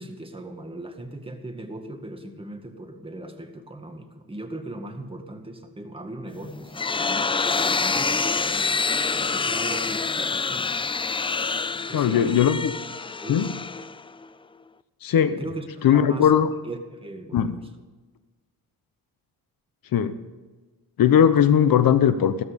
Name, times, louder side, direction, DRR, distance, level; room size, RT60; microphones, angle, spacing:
voice 1, 0.0-8.3 9.2-10.7 11.9-12.4 13.2-13.5 15.4-16.3 16.6-17.5, right 1 dB, 15° right, 4 dB, 2.0 m, -38 dB
sound 1, 6.4-14.3, left 4 dB, 15° left, 0.4 m, -26 dB
voice 2, 11.9-12.7 13.3-13.5 15.0-15.4 15.8-16.5 17.3-17.6 19.9-20.2 21.0-22.4, left 9 dB, 60° left, 12 dB, 1.0 m, -19 dB
15.5 x 13.5 x 5.3 m, 1.3 s
cardioid pair, 105°, 38 cm